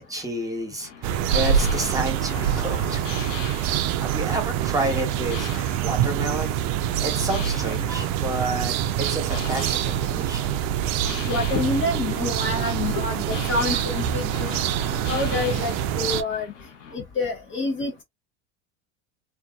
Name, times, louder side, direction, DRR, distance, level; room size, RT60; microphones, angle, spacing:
voice 1, 0.1-3.1 4.0-6.6 7.0-10.6, right 1 dB, 10° right, 1.1 m, -30 dB
sound 1, 0.8-17.0, left 6 dB, 90° left, 0.7 m, -40 dB
sound 2, 1.0-16.2, right 10 dB, 50° right, 0.4 m, -25 dB
voice 2, 11.3-14.6 15.1-16.5 16.9-18.0, left 3 dB, 35° left, 0.7 m, -27 dB
2.5 x 2.4 x 2.2 m
hypercardioid pair, 85°, 36 cm